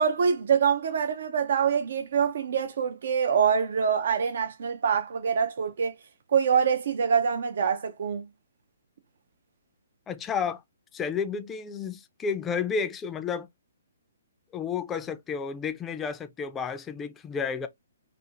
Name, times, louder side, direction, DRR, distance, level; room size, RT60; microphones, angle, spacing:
voice 1, 0.0-6.0 6.3-8.2, right 7 dB, 65° right, 0.4 m, -25 dB
voice 2, 10.1-10.6 10.9-13.5 14.5-17.7, left 6 dB, 15° left, 0.3 m, -31 dB
2.4 x 2.4 x 2.7 m
hypercardioid pair, 140°, 0 cm